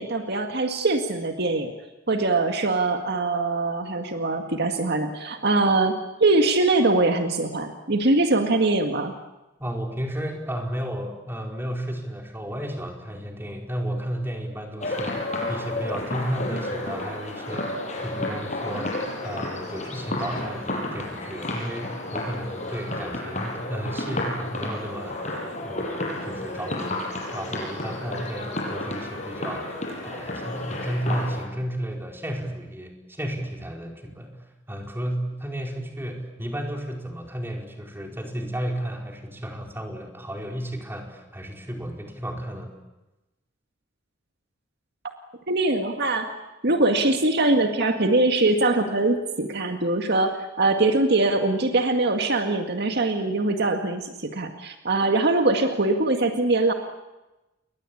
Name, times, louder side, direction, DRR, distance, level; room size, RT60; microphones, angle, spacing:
voice 1, 0.0-1.7 2.1-9.1 45.5-46.3 46.6-56.7, right 2 dB, 55° right, 5 dB, 1.9 m, -22 dB
voice 2, 9.6-25.2 25.6-27.0 27.3-29.7 30.0-42.7, equal, 10° right, 1 dB, 4.6 m, -33 dB
sound 1, 14.8-31.5, left 1 dB, 40° left, 6.8 m, -31 dB
29.0 x 23.0 x 8.7 m, 1.0 s
head